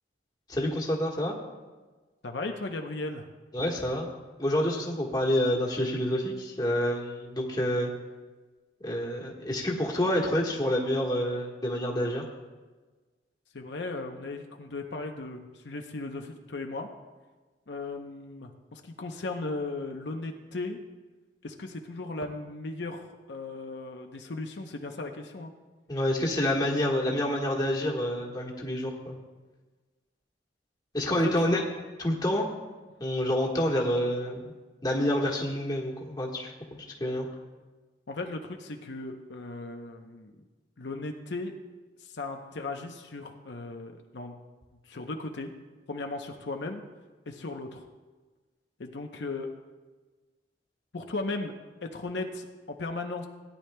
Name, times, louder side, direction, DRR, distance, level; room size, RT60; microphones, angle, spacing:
voice 1, 0.5-1.3 3.5-4.1 4.4-7.9 8.8-12.2 25.9-29.2 30.9-31.6 32.0-32.4 33.0-34.5 34.8-36.5 37.0-37.3, left 1 dB, 25° left, -2 dB, 1.4 m, -28 dB
voice 2, 2.2-3.3 13.5-16.9 17.7-20.8 21.4-25.5 31.1-31.6 38.1-40.3 40.8-41.5 42.0-44.3 44.8-45.5 45.9-46.8 47.3-47.9 48.8-49.5 50.9-51.5 51.8-53.3, left 2 dB, 75° left, 4 dB, 0.8 m, -36 dB
17.0 x 10.0 x 2.2 m, 1.3 s
head